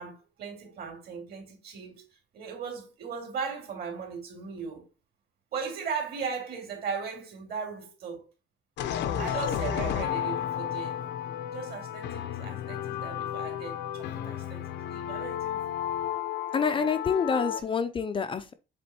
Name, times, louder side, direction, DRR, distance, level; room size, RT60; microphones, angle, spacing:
voice 1, 0.0-2.0 2.3-4.9 5.5-8.3 9.1-11.0 11.5-14.6 14.9-15.8 16.7-17.6, right 6 dB, 55° right, 2.8 m, -38 dB
sound 1, 8.8-17.6, left 10 dB, 65° left, 0.7 m, -32 dB
voice 2, 16.5-18.5, left 6 dB, 25° left, 0.5 m, -27 dB
7.6 x 3.7 x 4.3 m
cardioid pair, 160°, 19 cm